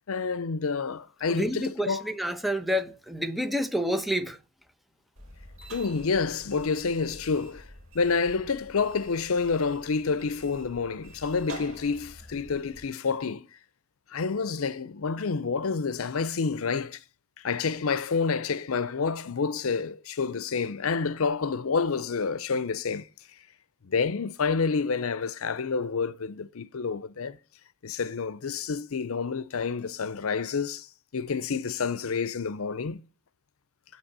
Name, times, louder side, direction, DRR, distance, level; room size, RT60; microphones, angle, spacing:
voice 1, 0.1-2.0 5.7-7.7 7.9-13.5 14.1-17.0 17.4-23.1 23.8-27.4 27.8-30.9 31.1-33.0, left 5 dB, 80° left, 0.6 m, -28 dB
voice 2, 1.3-4.4, equal, ahead, 1.0 m, -29 dB
sound 1, 5.2-12.9, right 1 dB, 70° right, 4.9 m, -48 dB
8.3 x 6.0 x 7.4 m
head